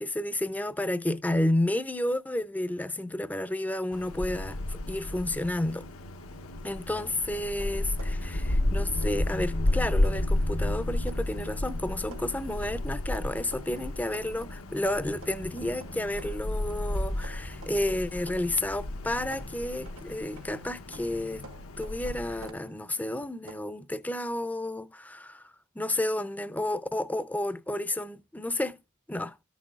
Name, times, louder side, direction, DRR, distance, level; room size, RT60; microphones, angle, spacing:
voice 1, 0.0-5.9 6.6-21.5 21.8-28.8 29.1-29.4, left 1 dB, 5° left, 0.5 m, -31 dB
Wind, 3.9-22.5, left 1 dB, 80° left, 0.9 m, -32 dB
sound 1, 7.0-8.7 9.0-10.3 10.8-14.6 15.0-18.7 19.0-23.6, right 2 dB, 85° right, 1.2 m, -51 dB
14.0 x 6.2 x 2.4 m
head